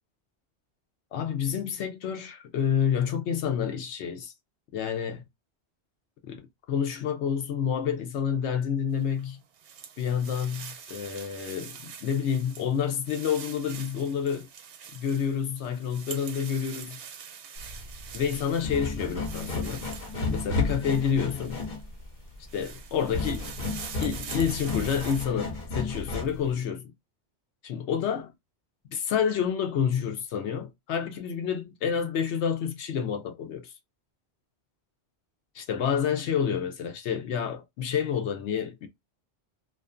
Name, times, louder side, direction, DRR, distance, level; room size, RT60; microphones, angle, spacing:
voice 1, 1.1-4.3 4.7-5.2 6.3-6.4 6.7-9.4 10.0-14.5 14.9-17.0 18.1-19.9 20.3-21.6 22.5-23.5 24.0-26.9 27.6-28.3 28.9-33.7 35.5-38.9, left 7 dB, 85° left, 1.0 m, -29 dB
sound 1, 9.0-21.8 22.3-25.3, right 8 dB, 80° right, 0.9 m, -45 dB
sound 2, 17.6-26.5, left 3 dB, 60° left, 1.0 m, -33 dB
2.5 x 2.5 x 2.4 m
omnidirectional pair, 1.1 m